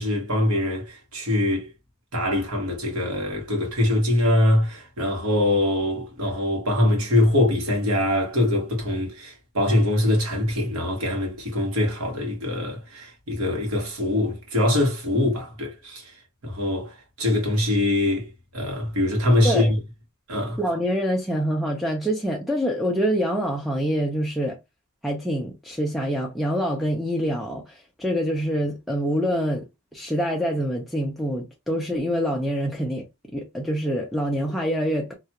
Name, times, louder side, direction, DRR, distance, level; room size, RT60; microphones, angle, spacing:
voice 1, 0.0-1.7 2.1-16.0 16.4-16.9 17.2-19.8 20.3-20.6, left 1 dB, 70° right, 1.1 m, -23 dB
voice 2, 20.6-24.6 25.0-29.6 29.9-33.0 33.3-35.1, equal, ahead, 0.4 m, -25 dB
2.4 x 2.2 x 2.8 m
head